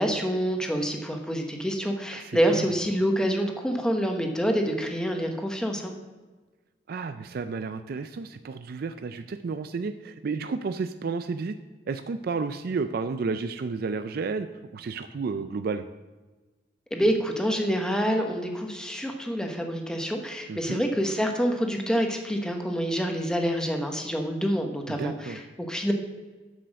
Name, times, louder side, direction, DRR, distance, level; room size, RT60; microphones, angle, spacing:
voice 1, 0.0-5.9 16.9-25.9, equal, 5° left, 2 dB, 1.0 m, -27 dB
voice 2, 2.1-2.7 6.9-11.6 11.9-14.5 14.7-15.8 20.5-20.8 24.9-25.4, right 4 dB, 55° right, 10 dB, 0.4 m, -32 dB
7.5 x 6.9 x 6.3 m, 1.3 s
head